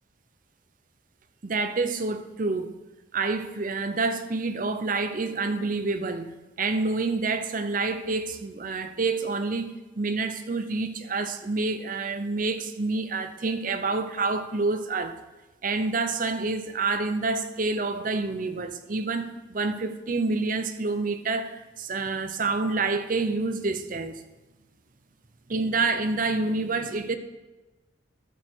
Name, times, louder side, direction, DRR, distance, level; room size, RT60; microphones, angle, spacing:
voice 1, 1.4-2.7 3.1-15.2 15.6-24.2 25.5-27.2, right 3 dB, 45° right, 0.7 m, -28 dB
13.5 x 6.6 x 4.5 m
head